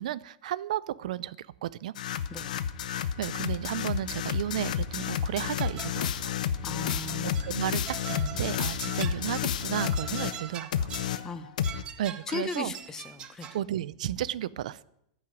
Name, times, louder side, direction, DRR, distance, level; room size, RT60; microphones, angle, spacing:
voice 1, 0.0-1.9 2.9-6.4 7.4-7.8 8.1-10.9 12.0-12.7 13.5-14.8, right 12 dB, 70° right, 20 dB, 0.5 m, -33 dB
sound 1, 2.0-10.4 10.7-11.8, left 9 dB, 85° left, 0.9 m, -31 dB
sound 2, 5.6-6.2 6.9-7.6 7.8-11.2 11.6-13.6, right 10 dB, 20° right, 0.7 m, -43 dB
voice 2, 6.6-7.4 11.2-11.6 12.3-13.5, left 3 dB, 10° left, 11 dB, 0.9 m, -37 dB
14.5 x 6.4 x 9.2 m, 0.79 s
supercardioid pair, 165°, 4 cm